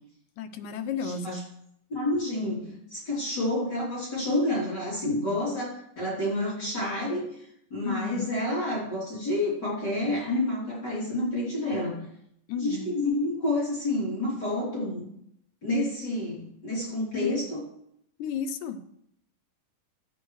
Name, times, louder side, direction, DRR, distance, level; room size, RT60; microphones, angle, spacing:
voice 1, 0.4-1.4 7.8-8.3 12.5-12.9 17.1-17.3 18.2-18.8, left 6 dB, 75° left, 8 dB, 2.0 m, -32 dB
voice 2, 1.0-1.4 1.9-12.0 12.6-15.0 15.6-17.6, left 1 dB, 30° left, -8 dB, 3.6 m, -29 dB
13.0 x 8.7 x 3.1 m, 0.74 s
omnidirectional pair, 3.8 m